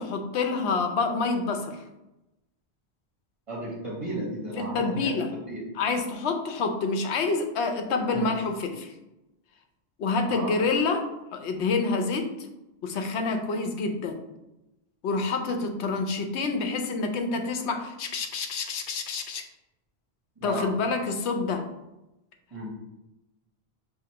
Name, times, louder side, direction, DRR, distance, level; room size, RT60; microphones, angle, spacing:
voice 1, 0.0-1.8 4.6-5.3 5.8-8.9 10.0-12.3 12.8-14.2 15.0-19.4 20.4-21.6, left 4 dB, 90° left, 5 dB, 0.9 m, -27 dB
voice 2, 3.5-5.6 8.1-8.4 10.3-10.5 20.4-20.7 22.5-22.7, right 1 dB, 30° right, -7 dB, 1.5 m, -34 dB
6.0 x 2.8 x 2.8 m, 0.95 s
omnidirectional pair, 1.1 m